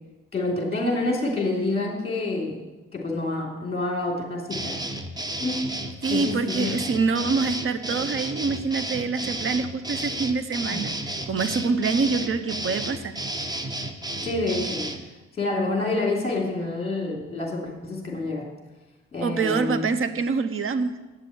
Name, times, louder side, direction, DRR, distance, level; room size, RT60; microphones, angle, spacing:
voice 1, 0.3-2.6 2.9-4.8 5.4-5.7 6.1-6.7 10.7-10.9 14.2-14.9 15.4-18.5 19.1-19.8, left 2 dB, 20° left, -1 dB, 3.1 m, -27 dB
sound 1, 4.5-15.0, right 1 dB, 15° right, 1.0 m, -32 dB
voice 2, 6.0-10.9 11.3-13.2 19.2-20.9, right 4 dB, 45° right, 11 dB, 1.0 m, -25 dB
8.4 x 8.0 x 8.1 m, 1.1 s
cardioid pair, 90°, 30 cm